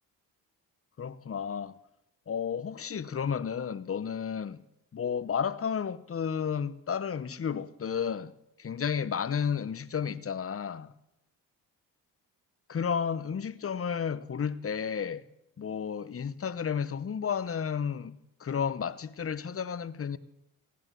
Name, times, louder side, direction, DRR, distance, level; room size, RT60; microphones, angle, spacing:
voice 1, 1.0-1.7 2.3-4.6 4.9-8.3 8.6-10.9 12.7-15.2 15.6-20.2, left 7 dB, 35° left, 0.9 m, -32 dB
16.0 x 9.8 x 6.8 m
hypercardioid pair, 50°, 42 cm